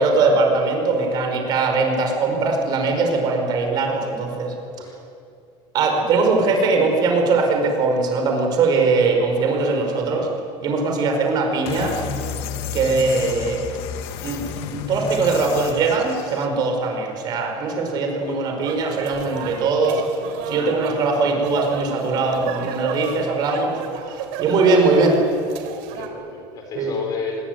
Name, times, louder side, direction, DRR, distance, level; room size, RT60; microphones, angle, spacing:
voice 1, 0.0-4.8 5.7-10.3 10.6-12.0 12.7-13.6 14.2-14.4 14.7-20.0 20.5-23.8 24.4-25.2 26.7-26.9, right 3 dB, 35° right, 3 dB, 5.0 m, -20 dB
voice 2, 9.8-10.3 18.2-18.5 25.9-27.5, left 4 dB, 30° left, 4 dB, 4.5 m, -33 dB
sound 1, 11.7-16.5, left 7 dB, 55° left, 1.7 m, -31 dB
sound 2, 18.6-26.1, right 8 dB, 65° right, 3.6 m, -33 dB
25.5 x 21.0 x 9.4 m, 2.5 s
cardioid pair, 170°, 12 cm